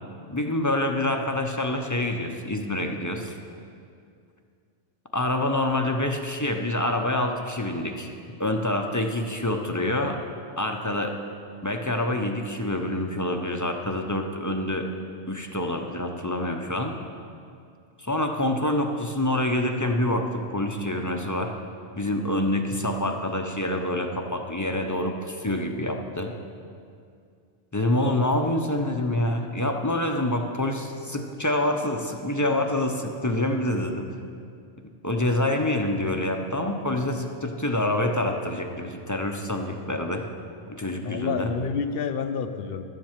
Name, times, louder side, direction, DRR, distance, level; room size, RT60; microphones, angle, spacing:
voice 1, 0.3-3.3 5.1-10.2 10.6-11.2 11.6-14.9 15.3-17.0 18.0-21.5 22.0-26.3 27.7-34.1 35.0-40.2 40.7-41.5, left 1 dB, 20° left, 3 dB, 0.6 m, -26 dB
voice 2, 41.0-42.8, left 6 dB, 60° left, 8 dB, 0.9 m, -29 dB
12.0 x 7.7 x 7.3 m, 2.4 s
omnidirectional pair, 1.2 m